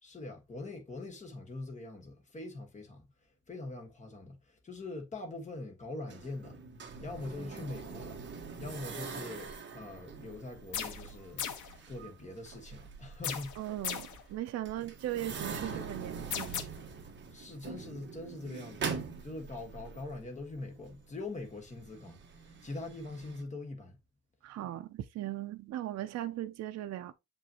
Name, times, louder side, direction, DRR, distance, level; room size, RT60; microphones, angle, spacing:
voice 1, 0.0-6.6 7.0-8.3 8.6-14.1 17.3-24.0, left 2 dB, 25° left, 1.4 m, -43 dB
sound 1, 6.1-23.4, right 5 dB, 40° right, 1.3 m, -44 dB
sound 2, 10.7-11.1 11.4-11.7 13.2-14.2 16.3-16.6, left 8 dB, 80° left, 1.1 m, -36 dB
voice 2, 13.6-16.5 24.4-24.9 25.2-27.1, right 13 dB, 60° right, 0.5 m, -38 dB
7.0 x 5.3 x 2.8 m
wide cardioid pair, 175°, 30 cm